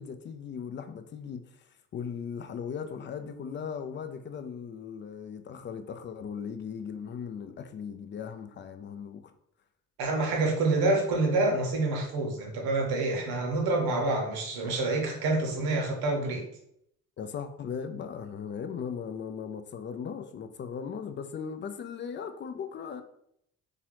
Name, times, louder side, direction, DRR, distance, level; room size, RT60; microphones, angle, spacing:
voice 1, 0.0-1.5 1.9-9.3 17.2-23.0, left 7 dB, 30° left, 0.4 m, -38 dB
voice 2, 10.0-16.4, right 2 dB, 60° right, 1.2 m, -27 dB
3.8 x 2.8 x 3.0 m
figure-of-eight pair, 45°, 41 cm